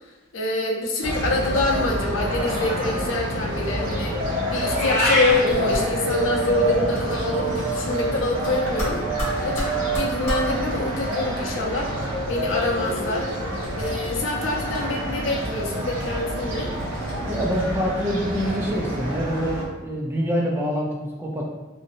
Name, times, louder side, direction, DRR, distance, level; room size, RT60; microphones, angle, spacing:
voice 1, 0.3-4.2 4.4-9.0 9.4-11.9 12.3-13.3 13.7-16.7, left 2 dB, 85° left, -1 dB, 0.6 m, -26 dB
sound 1, 1.0-19.6, right 1 dB, 80° right, 0.8 m, -27 dB
Meow, 4.7-5.4, left 1 dB, 60° right, 1.0 m, -22 dB
sound 2, 5.3-5.9 6.9-7.9 8.1-10.5 11.8-14.5 14.7-15.4 15.9-16.0 16.7-17.6, equal, 15° left, 1.2 m, -34 dB
voice 2, 17.3-21.4, equal, 10° right, -2 dB, 0.4 m, -26 dB
3.0 x 2.7 x 2.5 m, 1.2 s
head